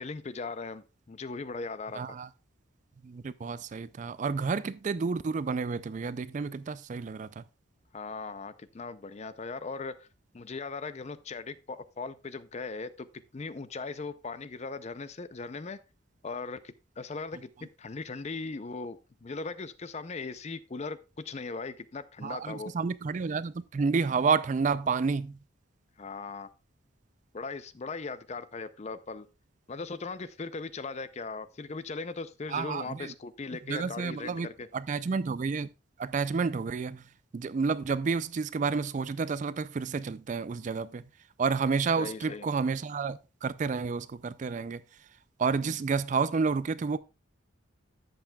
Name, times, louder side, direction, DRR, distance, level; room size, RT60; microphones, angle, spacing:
voice 1, 0.0-2.0 7.9-10.1 10.3-13.1 13.3-15.8 16.2-17.5 17.8-21.0 21.2-22.7 26.0-26.5 27.3-29.3 29.7-34.7 42.0-42.5 45.6-45.7, left 4 dB, 35° left, 0.5 m, -39 dB
voice 2, 1.9-2.3 3.0-7.4 22.2-25.4 32.5-33.1 33.7-35.7 36.0-37.0 37.3-41.0 41.4-44.8 45.4-47.0, right 5 dB, 40° right, 0.3 m, -30 dB
11.5 x 7.9 x 2.3 m
head